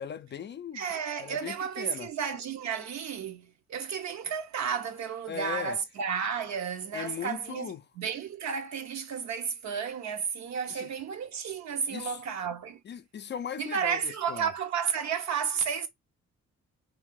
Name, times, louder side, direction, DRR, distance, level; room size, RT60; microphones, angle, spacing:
voice 1, 0.0-0.8 1.2-2.1 5.3-5.8 6.9-7.8 10.7-10.9 11.9-12.2 12.9-14.5, left 8 dB, 35° left, 0.4 m, -38 dB
voice 2, 0.7-12.8 13.6-15.9, right 7 dB, 65° right, 0.9 m, -32 dB
2.7 x 2.5 x 3.6 m
cardioid pair, 90°, 30 cm